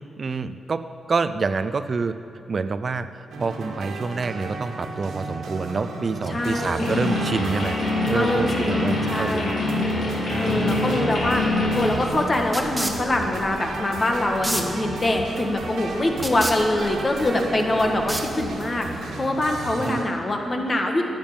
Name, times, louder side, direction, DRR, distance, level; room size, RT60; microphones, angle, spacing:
voice 1, 0.0-2.2 2.5-7.8 8.1-9.5 10.3-11.1 19.8-20.0, right 4 dB, 50° right, 11 dB, 0.4 m, -27 dB
sound 1, 3.3-20.0, right 2 dB, 90° right, 1.6 m, -34 dB
voice 2, 6.3-6.9 8.1-9.7 10.4-21.0, left 1 dB, 35° left, 3 dB, 1.6 m, -24 dB
sound 2, 6.8-11.9, left 2 dB, 75° left, 2.5 m, -25 dB
sound 3, 11.2-18.8, right 1 dB, 10° right, 1.3 m, -34 dB
10.5 x 8.9 x 7.2 m, 2.8 s
cardioid pair, 70°, 0 cm